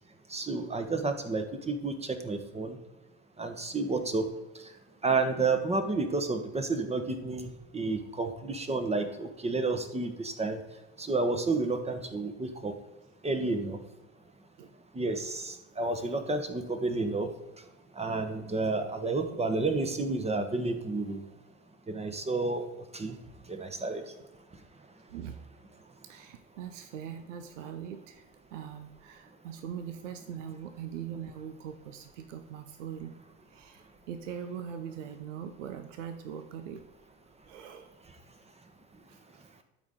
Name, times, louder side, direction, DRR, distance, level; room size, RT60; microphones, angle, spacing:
voice 1, 0.3-2.8 3.4-4.3 5.0-10.6 11.0-12.7 13.2-13.8 14.9-17.3 18.0-21.2 21.9-22.6 22.9-23.2 23.5-24.0, right 3 dB, 15° right, 7 dB, 1.2 m, -30 dB
voice 2, 25.1-25.4 26.0-28.2 28.5-33.1 33.5-36.8 37.5-37.9 39.1-39.6, right 8 dB, 70° right, 8 dB, 0.8 m, -41 dB
12.0 x 5.0 x 3.7 m, 1.0 s
hypercardioid pair, 70°, 38 cm